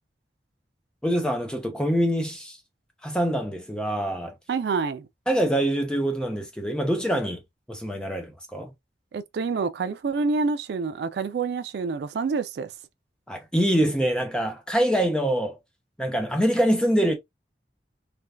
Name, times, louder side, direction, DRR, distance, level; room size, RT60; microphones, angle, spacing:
voice 1, 1.0-2.6 3.0-4.3 5.3-7.4 7.7-8.7 13.3-15.6 16.0-17.1, equal, 5° left, 0.5 m, -24 dB
voice 2, 4.5-5.1 9.1-12.7, right 4 dB, 70° right, 0.3 m, -27 dB
3.3 x 2.2 x 2.3 m
head